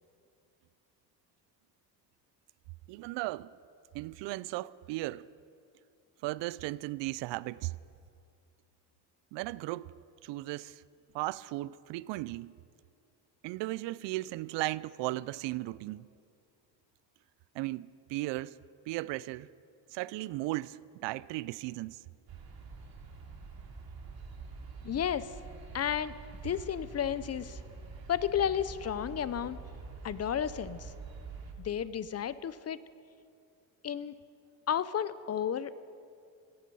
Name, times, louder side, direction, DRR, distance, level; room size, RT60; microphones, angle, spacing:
voice 1, 2.9-3.6 3.9-5.3 6.2-7.7 9.3-9.9 10.2-10.8 11.1-12.5 13.4-16.1 17.5-18.6 18.9-19.5 19.9-22.0, right 18 dB, 75° right, 0.5 m, -36 dB
sound 1, 22.3-31.5, right 4 dB, 55° right, 2.7 m, -46 dB
voice 2, 24.8-25.3 25.7-26.1 26.4-27.6 28.1-29.6 30.0-30.9 31.6-32.8 33.8-34.2 34.7-35.8, left 9 dB, 35° left, 0.6 m, -32 dB
17.5 x 14.0 x 5.5 m
cardioid pair, 95°, 44 cm